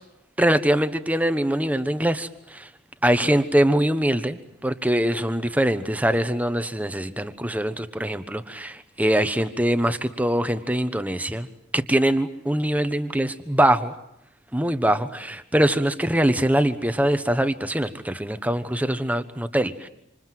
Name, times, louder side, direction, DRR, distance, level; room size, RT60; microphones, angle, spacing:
voice 1, 0.4-2.7 3.0-11.5 11.7-13.9 14.5-19.9, right 1 dB, 10° right, 10 dB, 1.2 m, -23 dB
27.0 x 27.0 x 7.7 m, 0.84 s
head